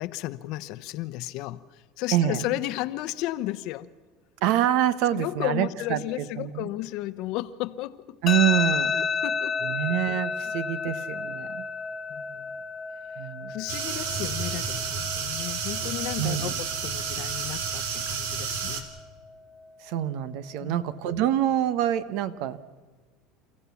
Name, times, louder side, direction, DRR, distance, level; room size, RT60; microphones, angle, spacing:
voice 1, 0.0-3.9 5.1-8.2 8.9-9.7 12.1-12.6 13.5-18.9 20.6-20.8, left 16 dB, 60° left, 15 dB, 0.9 m, -34 dB
voice 2, 2.1-2.4 4.4-6.7 8.2-9.0 9.6-11.6 13.2-13.5 16.2-16.5 19.8-22.6, right 11 dB, 70° right, 15 dB, 1.1 m, -26 dB
sound 1, 8.3-21.2, left 5 dB, 35° left, 0.9 m, -33 dB
sound 2, 13.7-18.8, right 6 dB, 85° right, 2.5 m, -31 dB
29.5 x 15.0 x 7.1 m, 1.4 s
supercardioid pair, 130°, 0 cm